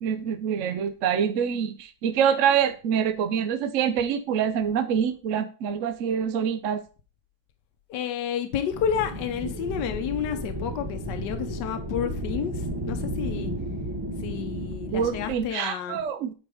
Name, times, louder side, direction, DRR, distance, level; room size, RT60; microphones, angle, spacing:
voice 1, 0.0-6.8 14.9-16.3, right 8 dB, 65° right, 0.8 m, -25 dB
voice 2, 7.9-13.5 14.2-16.0, left 8 dB, 70° left, 1.4 m, -30 dB
sound 1, 8.7-15.3, equal, 20° right, 0.6 m, -33 dB
9.3 x 4.6 x 4.9 m
omnidirectional pair, 1.9 m